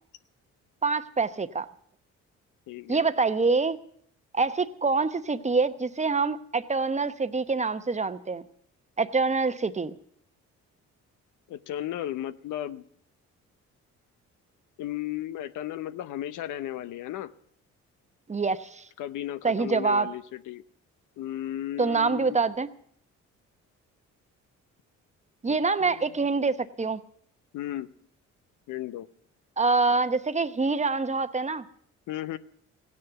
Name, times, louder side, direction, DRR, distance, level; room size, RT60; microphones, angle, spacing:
voice 1, 0.8-1.7 2.9-3.8 4.3-8.4 9.0-9.9 18.3-18.8 19.4-20.1 21.8-22.7 25.4-27.0 29.6-31.6, right 4 dB, 25° right, 11 dB, 0.9 m, -25 dB
voice 2, 2.7-3.0 11.5-12.8 14.8-17.3 19.0-20.6 21.2-22.4 25.5-26.2 27.5-27.9 28.7-29.1 32.1-32.4, left 13 dB, 85° left, 14 dB, 0.8 m, -35 dB
16.0 x 9.7 x 8.1 m, 0.63 s
cardioid pair, 90°, 30 cm